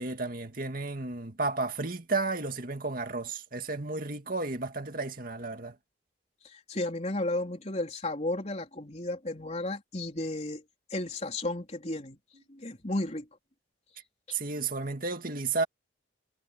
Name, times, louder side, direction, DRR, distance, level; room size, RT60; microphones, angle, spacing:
voice 1, 0.0-5.8 14.3-15.6, right 3 dB, 45° right, 2.2 m, -32 dB
voice 2, 6.4-10.6 10.9-12.2 12.5-13.3 14.3-14.4, left 2 dB, 35° left, 4.0 m, -33 dB
head